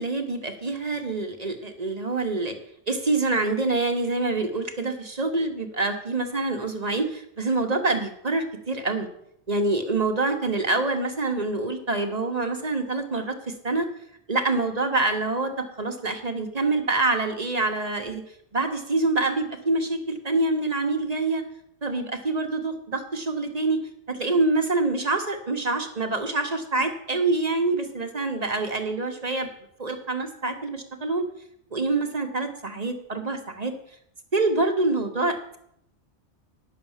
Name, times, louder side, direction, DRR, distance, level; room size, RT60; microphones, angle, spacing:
voice 1, 0.0-2.6 2.9-9.1 9.5-13.9 14.3-18.2 18.5-21.4 21.8-23.8 24.1-29.5 29.8-31.3 31.7-33.7 34.3-35.6, right 3 dB, 35° right, 5 dB, 1.1 m, -26 dB
10.0 x 6.3 x 7.2 m, 0.73 s
omnidirectional pair, 1.2 m